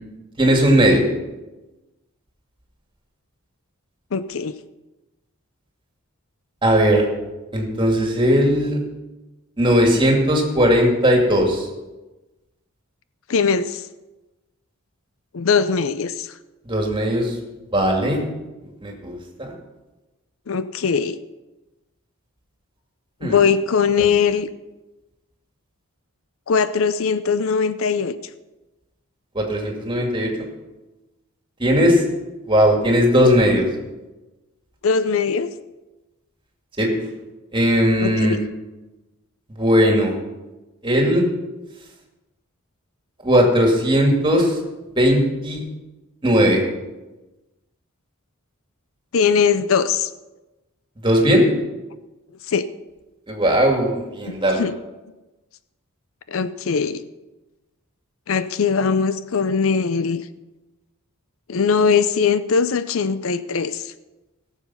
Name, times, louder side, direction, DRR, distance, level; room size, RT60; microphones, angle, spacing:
voice 1, 0.4-1.0 6.6-7.0 7.5-8.8 9.6-11.7 16.7-17.3 17.7-18.2 18.8-19.5 23.2-23.4 29.3-30.3 31.6-32.0 32.5-33.7 36.8-36.9 37.5-38.4 39.6-40.1 40.8-41.2 43.2-44.6 45.0-45.6 46.2-46.6 51.0-51.5 53.3-54.6, equal, 25° right, 1 dB, 2.3 m, -17 dB
voice 2, 4.1-4.5 13.3-13.8 15.3-16.3 20.5-21.2 23.2-24.5 26.5-28.2 34.8-35.5 38.0-38.4 49.1-50.1 52.5-52.7 54.6-54.7 56.3-57.0 58.3-60.3 61.5-63.9, left 6 dB, 65° left, 14 dB, 0.5 m, -20 dB
17.5 x 7.2 x 5.6 m, 1.1 s
head